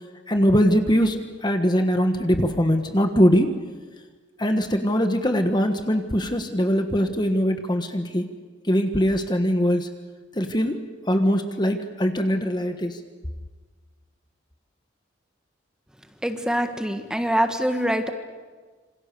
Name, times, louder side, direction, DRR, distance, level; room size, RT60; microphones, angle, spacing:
voice 1, 0.3-3.5 4.4-8.3 8.6-9.9 10.3-10.8 11.1-13.0, equal, 25° left, 6 dB, 1.3 m, -22 dB
voice 2, 16.2-18.1, equal, 5° right, 6 dB, 1.5 m, -24 dB
27.0 x 26.0 x 6.9 m, 1.4 s
head